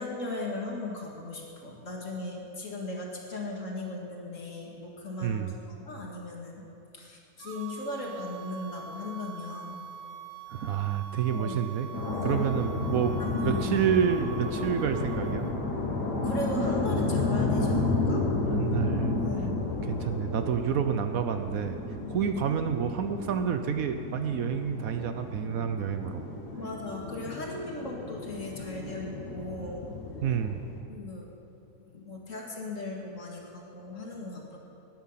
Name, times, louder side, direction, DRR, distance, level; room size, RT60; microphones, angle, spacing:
voice 1, 0.0-6.7 6.9-9.8 11.3-11.6 12.1-12.6 13.1-13.8 16.2-18.3 19.2-19.6 22.0-22.3 26.6-29.9 30.9-31.3 31.8-34.6, left 2 dB, 50° left, -1 dB, 2.4 m, -37 dB
voice 2, 5.2-5.5 10.5-11.9 12.2-15.5 18.5-19.1 19.8-21.8 22.1-26.3 30.2-30.6, right 8 dB, 65° right, 8 dB, 1.0 m, -29 dB
sound 1, 7.4-15.6, right 6 dB, 85° right, 1.5 m, -44 dB
sound 2, 11.9-30.8, left 3 dB, 85° left, 2.5 m, -32 dB
18.5 x 10.5 x 5.7 m, 2.9 s
omnidirectional pair, 1.7 m